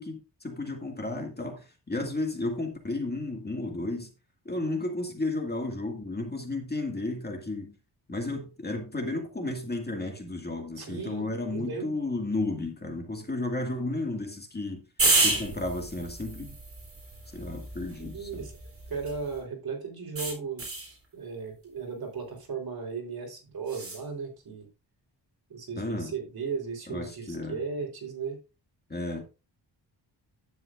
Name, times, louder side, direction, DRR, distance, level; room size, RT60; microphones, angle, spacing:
voice 1, 0.0-4.1 4.5-7.7 8.1-14.8 15.2-16.6 17.3-18.4 25.8-26.1 26.9-27.6 28.9-29.2, left 2 dB, 20° left, 2.1 m, -33 dB
voice 2, 10.8-11.9 18.0-18.6 18.9-24.7 25.5-28.4, right 5 dB, 55° right, 4.0 m, -36 dB
sound 1, 15.0-19.4 20.2-20.9 23.7-24.0, right 2 dB, 30° right, 3.6 m, -30 dB
11.5 x 9.3 x 2.5 m
wide cardioid pair, 130°, 44 cm